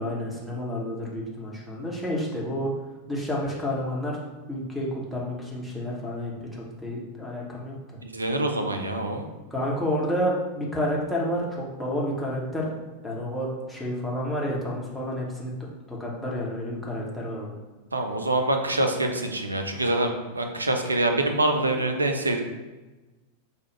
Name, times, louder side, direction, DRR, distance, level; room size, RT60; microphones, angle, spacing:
voice 1, 0.0-2.7 3.1-4.2 4.5-6.3 6.8-7.7 9.5-12.8 13.0-15.5 15.9-17.5, equal, ahead, -5 dB, 1.0 m, -30 dB
voice 2, 8.0-9.2 17.9-22.4, right 2 dB, 80° right, 4 dB, 0.4 m, -25 dB
4.7 x 2.3 x 3.1 m, 1.2 s
figure-of-eight pair, 90°, 0 cm